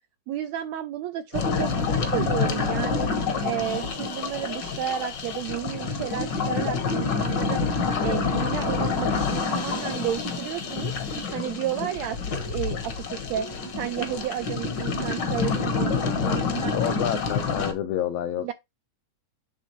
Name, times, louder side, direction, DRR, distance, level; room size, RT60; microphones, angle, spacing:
voice 1, 0.3-3.1 3.4-7.6 8.0-12.2 12.4-13.5 13.7-16.9 18.4-18.5, right 11 dB, 85° right, 1.5 m, -32 dB
sound 1, 1.3-17.7, left 4 dB, 65° left, 1.1 m, -27 dB
voice 2, 16.0-18.5, left 10 dB, 85° left, 1.4 m, -30 dB
9.9 x 3.6 x 3.0 m
omnidirectional pair, 3.6 m